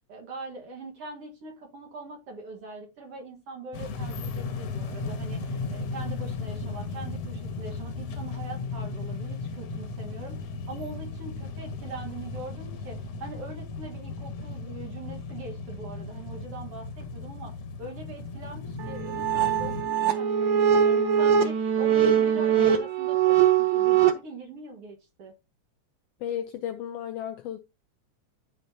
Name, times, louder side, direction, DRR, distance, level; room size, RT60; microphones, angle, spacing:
voice 1, 0.1-25.3, right 3 dB, 55° right, 2.4 m, -42 dB
sound 1, 3.7-19.8, left 3 dB, 65° left, 2.2 m, -36 dB
sound 2, 18.8-24.1, right 8 dB, 80° right, 1.0 m, -22 dB
voice 2, 26.2-27.6, left 10 dB, 80° left, 1.4 m, -34 dB
13.0 x 4.6 x 2.8 m
omnidirectional pair, 3.3 m